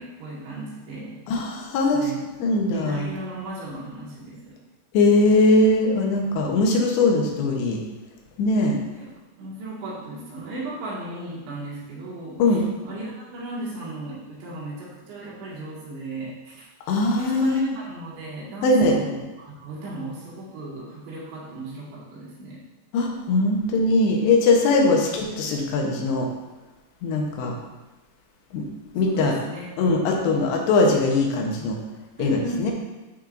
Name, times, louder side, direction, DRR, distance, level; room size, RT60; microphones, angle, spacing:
voice 1, 0.0-1.2 1.9-2.3 2.7-4.6 9.0-9.1 9.4-16.7 17.0-22.6 29.0-29.8 30.2-30.5 32.2-32.7, right 1 dB, 80° right, -6 dB, 4.1 m, -35 dB
voice 2, 1.3-2.0 2.4-3.1 4.9-7.8 8.4-8.8 12.4-12.6 16.9-17.6 18.6-18.9 22.9-26.3 27.0-27.5 28.5-28.6 28.9-29.3 29.8-31.8 32.2-32.7, left 2 dB, 80° left, 0 dB, 3.1 m, -20 dB
11.5 x 5.3 x 2.5 m, 1.1 s
omnidirectional pair, 5.1 m